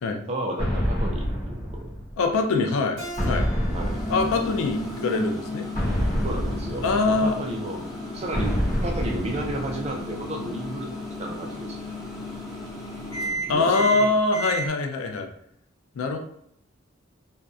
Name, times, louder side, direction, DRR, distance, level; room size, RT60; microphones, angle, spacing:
voice 1, 0.3-1.9 3.7-4.0 6.2-7.8 8.1-11.8 13.5-14.2, right 1 dB, 30° right, 1 dB, 0.3 m, -33 dB
sound 1, 0.6-2.4 3.2-4.9 5.7-7.5 8.3-10.1, equal, 40° left, 0.9 m, -28 dB
voice 2, 2.2-3.0 3.3-3.5 4.1-5.7 6.8-7.4 13.5-15.3 15.9-16.2, left 3 dB, 75° left, 4 dB, 0.4 m, -23 dB
Keyboard (musical), 3.0-6.2, right 1 dB, 75° right, 1.0 m, -42 dB
Microwave oven, 3.1-14.7, equal, 15° left, 0.6 m, -34 dB
2.6 x 2.1 x 2.3 m, 0.70 s
head